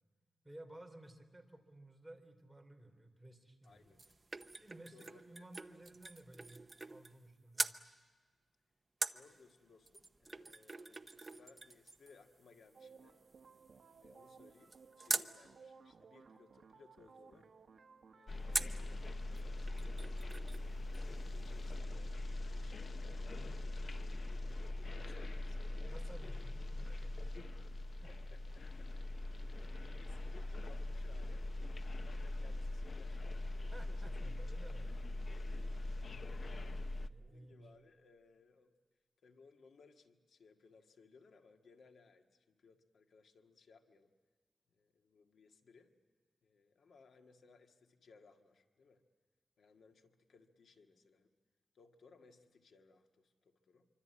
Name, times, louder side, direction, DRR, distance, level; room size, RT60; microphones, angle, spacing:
voice 1, 0.4-4.0 4.6-7.8 25.8-27.6 28.0-28.1 33.7-34.9 35.9-36.2 36.7-37.7, right 1 dB, 5° right, 2 dB, 3.4 m, -56 dB
voice 2, 3.6-4.0 4.3-4.6 4.9-5.8 9.1-13.2 14.0-17.5 18.1-20.2 20.9-25.6 27.9-28.9 29.4-34.1 37.0-38.7 39.2-44.1 44.7-45.9 46.4-49.0 49.6-51.3 51.7-53.9, left 4 dB, 75° left, 4 dB, 1.8 m, -64 dB
sound 1, 3.6-7.3 7.5-7.8 9.0-15.3 18.5-18.9 19.4-19.5 19.7-20.7 20.9-21.0, right 3 dB, 25° right, 0.8 m, -43 dB
sound 2, 12.7-18.6, right 5 dB, 55° right, 1.4 m, -60 dB
sound 3, 18.3-37.1, left 2 dB, 40° left, 0.8 m, -42 dB
26.0 x 25.0 x 8.5 m, 1.4 s
wide cardioid pair, 150°, 0 cm